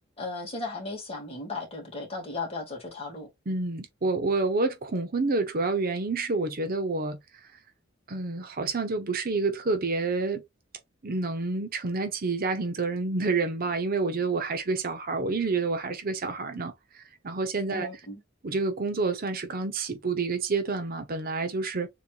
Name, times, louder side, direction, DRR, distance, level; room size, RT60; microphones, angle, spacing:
voice 1, 0.2-3.3 17.7-18.2, left 3 dB, 30° left, 2.1 m, -36 dB
voice 2, 3.5-7.2 8.1-10.4 11.0-17.9 18.4-21.9, right 3 dB, 45° right, 0.8 m, -28 dB
7.0 x 3.1 x 2.4 m
head